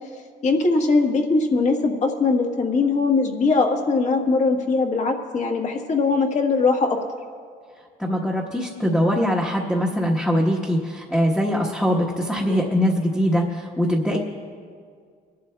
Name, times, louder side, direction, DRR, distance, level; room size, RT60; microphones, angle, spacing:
voice 1, 0.4-7.0, left 3 dB, 45° left, 3 dB, 1.4 m, -21 dB
voice 2, 8.0-14.2, equal, 5° left, -4 dB, 1.2 m, -22 dB
28.5 x 11.5 x 2.2 m, 2.1 s
cardioid pair, 110°, 17 cm